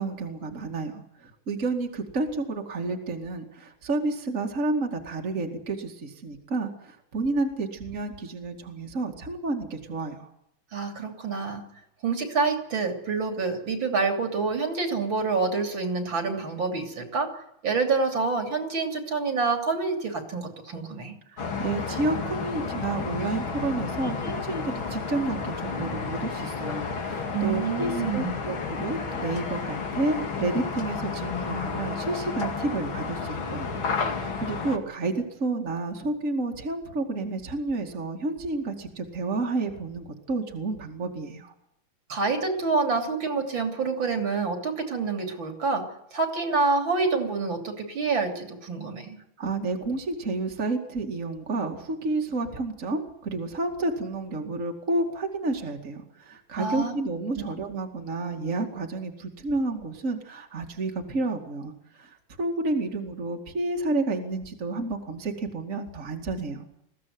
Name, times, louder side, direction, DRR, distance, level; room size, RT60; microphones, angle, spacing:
voice 1, 0.0-10.3 21.3-33.7 34.0-41.5 49.4-66.7, right 2 dB, 35° right, 2 dB, 2.6 m, -30 dB
voice 2, 10.7-11.6 12.0-17.3 17.6-21.2 27.3-28.3 42.1-45.9 46.1-49.2 56.5-56.9, right 4 dB, 65° right, 5 dB, 3.7 m, -27 dB
sound 1, 21.4-34.8, left 5 dB, 70° left, 3.0 m, -32 dB
21.5 x 15.5 x 9.5 m, 0.77 s
omnidirectional pair, 2.3 m